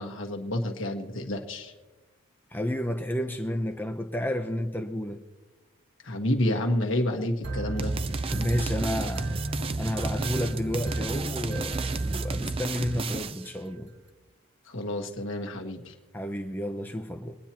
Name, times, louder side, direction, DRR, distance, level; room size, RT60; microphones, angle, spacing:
voice 1, 0.0-1.7 6.0-7.9 14.7-15.9, left 1 dB, 60° left, 3 dB, 1.5 m, -29 dB
voice 2, 2.5-5.2 8.2-9.3 9.8-13.9 16.1-17.4, left 1 dB, 10° left, 5 dB, 0.7 m, -31 dB
sound 1, 7.4-13.1, right 2 dB, 60° right, 1.8 m, -33 dB
sound 2, 7.8-13.5, right 4 dB, 25° right, 0.4 m, -33 dB
25.0 x 9.7 x 3.0 m, 1.2 s
head